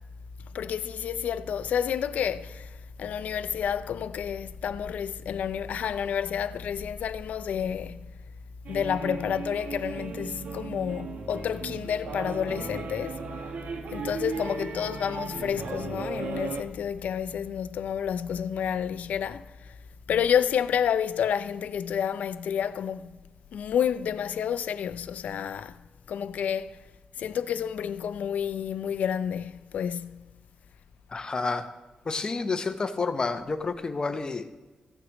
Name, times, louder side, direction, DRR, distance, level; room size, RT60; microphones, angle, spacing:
voice 1, 0.5-2.7 3.0-8.0 8.7-13.2 13.9-19.7 20.1-23.2 23.5-25.8 26.1-26.7 27.2-30.2, left 8 dB, 85° left, 0.4 m, -29 dB
sound 1, 8.6-16.6, right 4 dB, 75° right, 1.0 m, -36 dB
voice 2, 31.1-31.7 32.1-34.5, left 4 dB, 35° left, 0.8 m, -29 dB
15.5 x 9.6 x 3.0 m
wide cardioid pair, 125°, 3 cm